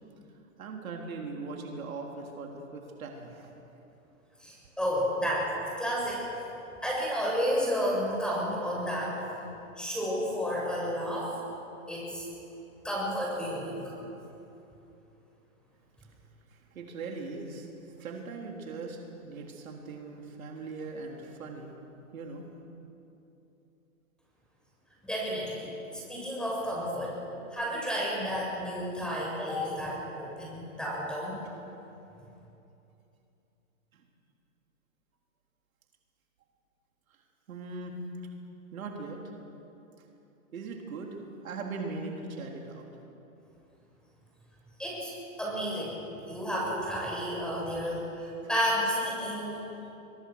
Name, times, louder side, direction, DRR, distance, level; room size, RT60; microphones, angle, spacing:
voice 1, 0.6-3.5 16.5-21.7 22.1-22.4 33.9-34.1 37.1-37.2 37.5-38.0 38.7-39.2 40.5-41.2 41.4-42.9, right 3 dB, 75° right, 1 dB, 3.7 m, -40 dB
voice 2, 4.4-5.5 5.8-6.2 6.8-9.2 9.8-11.3 11.9-12.3 12.8-13.9 25.0-27.2 27.5-31.4 44.8-45.1 45.4-46.0 46.3-49.7, equal, ahead, -4 dB, 7.3 m, -31 dB
23.5 x 23.0 x 6.5 m, 2.9 s
hypercardioid pair, 135°, 42 cm